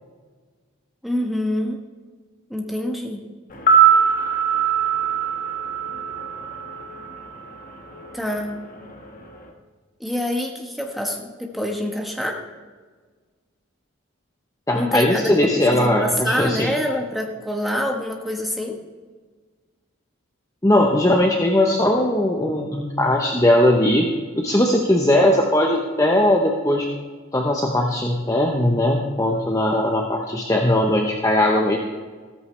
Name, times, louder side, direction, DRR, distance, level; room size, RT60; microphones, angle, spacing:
voice 1, 1.0-1.8 2.5-3.2 8.1-8.5 10.0-12.4 14.7-15.3 15.7-18.8, left 1 dB, ahead, 1 dB, 1.3 m, -26 dB
sound 1, 3.5-7.7 7.9-8.1, right 7 dB, 40° left, 1.4 m, -21 dB
voice 2, 14.7-16.7 20.6-24.1 24.4-26.9 27.3-31.8, left 1 dB, 15° left, 1 dB, 0.8 m, -19 dB
14.5 x 14.0 x 3.3 m, 1.5 s
head